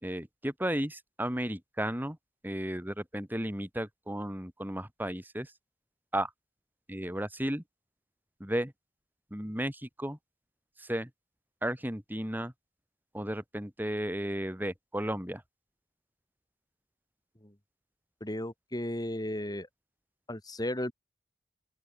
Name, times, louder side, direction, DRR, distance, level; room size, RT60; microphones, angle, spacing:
voice 1, 0.0-2.2 2.4-5.5 6.1-6.3 6.9-7.6 8.4-8.7 9.3-10.2 10.8-11.1 11.6-12.5 13.1-15.4, right 1 dB, 10° right, 3.7 m, -34 dB
voice 2, 18.2-19.7 20.3-20.9, left 1 dB, 20° left, 2.6 m, -34 dB
open air
head